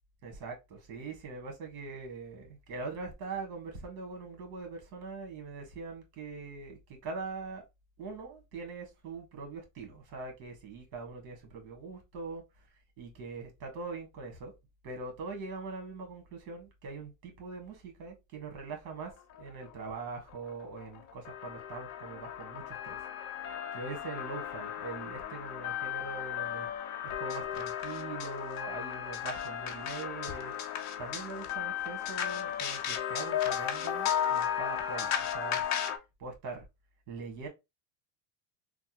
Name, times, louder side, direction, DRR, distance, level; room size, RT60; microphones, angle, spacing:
voice 1, 0.2-7.6 8.0-12.4 13.0-14.5 14.8-19.1 19.4-23.0 23.7-26.7 27.0-30.5 31.0-35.6 36.2-36.6 37.1-37.5, right 4 dB, 65° right, 1.6 m, -42 dB
sound 1, 19.4-19.5 19.8-20.0 20.3-36.0, left 9 dB, 35° left, 0.7 m, -35 dB
3.4 x 2.2 x 2.9 m
supercardioid pair, 125°, 50 cm